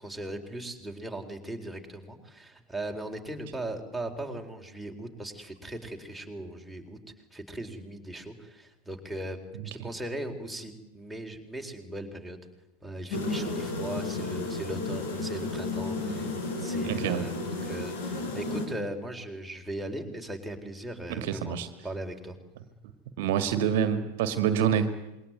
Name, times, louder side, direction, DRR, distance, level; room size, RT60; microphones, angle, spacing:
voice 1, 0.0-7.0 7.3-9.4 9.6-12.4 12.8-22.4, right 1 dB, ahead, 1 dB, 4.1 m, -38 dB
sound 1, 13.1-18.7, left 3 dB, 55° left, 7.8 m, -32 dB
voice 2, 16.8-17.3 21.1-21.7 23.2-24.9, right 8 dB, 50° right, 11 dB, 1.9 m, -26 dB
27.0 x 22.5 x 9.5 m, 0.99 s
figure-of-eight pair, 90°, 0 cm